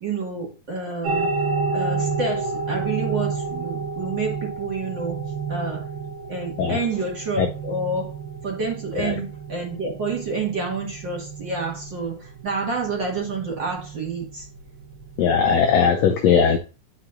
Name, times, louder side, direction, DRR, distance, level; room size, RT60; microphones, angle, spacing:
voice 1, 0.0-1.3 1.7-5.2 5.5-5.9 6.3-8.1 8.4-14.5, right 3 dB, 40° right, -1 dB, 2.3 m, -28 dB
sound 1, 1.0-15.8, right 4 dB, 85° right, 3.3 m, -30 dB
voice 2, 15.2-16.6, left 7 dB, 75° left, 3 dB, 1.6 m, -18 dB
9.8 x 5.8 x 2.6 m, 0.33 s
omnidirectional pair, 3.7 m